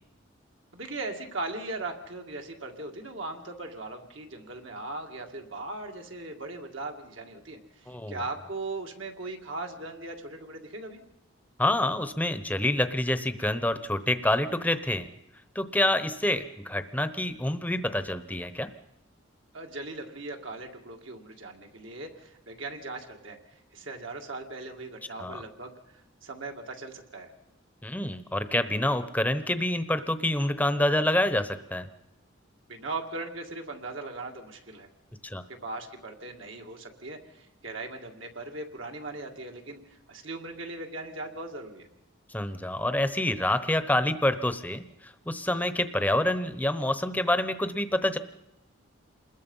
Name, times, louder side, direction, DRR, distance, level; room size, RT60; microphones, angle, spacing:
voice 1, 0.7-11.0 19.5-25.8 26.2-27.3 32.7-34.9 35.5-41.9, right 2 dB, 65° right, 3 dB, 2.2 m, -39 dB
voice 2, 7.9-8.2 11.6-15.1 15.5-18.7 25.2-25.4 27.8-31.9 35.2-35.4 42.3-48.2, left 1 dB, 10° left, 11 dB, 0.9 m, -27 dB
27.5 x 21.0 x 5.6 m, 0.89 s
head